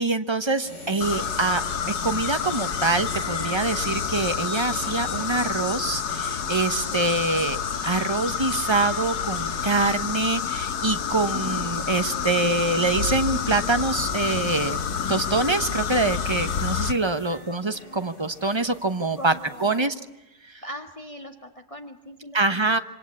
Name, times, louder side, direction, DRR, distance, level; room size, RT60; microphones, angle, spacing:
voice 1, 0.0-7.6 7.8-14.8 15.1-19.3 19.6-19.9 22.3-22.8, right 3 dB, 20° right, 9 dB, 1.0 m, -25 dB
sound 1, 0.6-19.8, left 2 dB, 50° left, 4.4 m, -44 dB
sound 2, 1.0-16.9, left 7 dB, 90° left, 2.0 m, -28 dB
voice 2, 17.3-18.1 19.2-19.9 20.6-22.7, equal, 20° left, 4 dB, 1.8 m, -41 dB
26.5 x 25.5 x 8.6 m, 0.95 s
omnidirectional pair, 1.7 m